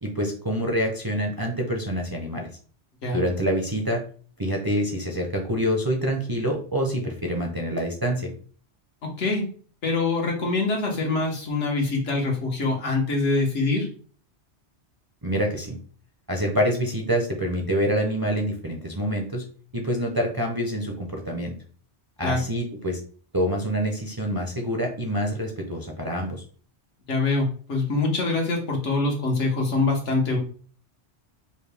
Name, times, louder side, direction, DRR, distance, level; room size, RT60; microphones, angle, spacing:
voice 1, 0.0-2.5 3.1-4.0 4.4-8.3 15.2-15.8 16.3-19.4 19.7-21.5 22.2-23.0 23.3-26.4, equal, 30° right, 1 dB, 0.5 m, -26 dB
voice 2, 9.0-9.5 9.8-13.9 22.2-22.4 27.1-30.4, left 3 dB, 85° left, 0 dB, 1.5 m, -24 dB
5.2 x 2.2 x 3.4 m, 0.44 s
omnidirectional pair, 1.2 m